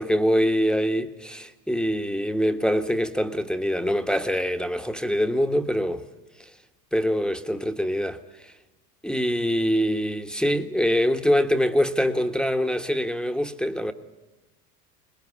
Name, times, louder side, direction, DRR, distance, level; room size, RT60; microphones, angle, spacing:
voice 1, 0.0-6.0 6.4-6.5 6.9-8.2 8.4-8.5 9.0-13.9, equal, ahead, 1.4 m, -24 dB
23.0 x 20.5 x 9.8 m
hypercardioid pair, 80°, 46 cm